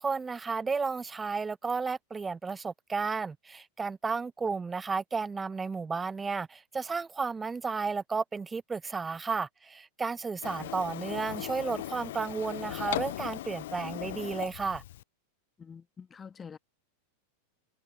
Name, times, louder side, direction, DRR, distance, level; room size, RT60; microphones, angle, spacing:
voice 1, 0.0-14.8, right 4 dB, 15° right, 0.5 m, -33 dB
Printer, 10.4-15.0, left 14 dB, 55° left, 0.4 m, -38 dB
voice 2, 15.6-16.6, left 6 dB, 20° left, 1.5 m, -46 dB
figure-of-eight pair, 90°, 0 cm